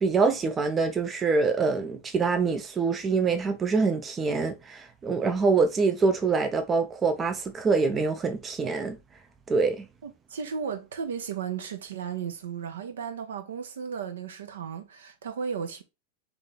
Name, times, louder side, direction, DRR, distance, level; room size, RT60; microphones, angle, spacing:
voice 1, 0.0-9.0 9.5-9.9, right 4 dB, 20° right, 0.5 m, -25 dB
voice 2, 10.0-15.8, right 7 dB, 65° right, 0.7 m, -35 dB
3.4 x 3.2 x 3.9 m
figure-of-eight pair, 90°, 0 cm